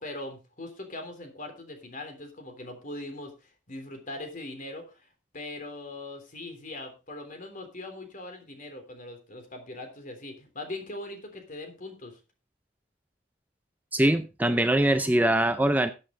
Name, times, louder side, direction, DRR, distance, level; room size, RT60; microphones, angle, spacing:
voice 1, 0.0-12.2, left 2 dB, 45° left, 6 dB, 3.4 m, -41 dB
voice 2, 13.9-15.9, right 1 dB, 10° right, 9 dB, 0.6 m, -23 dB
14.0 x 8.2 x 3.8 m, 0.30 s
head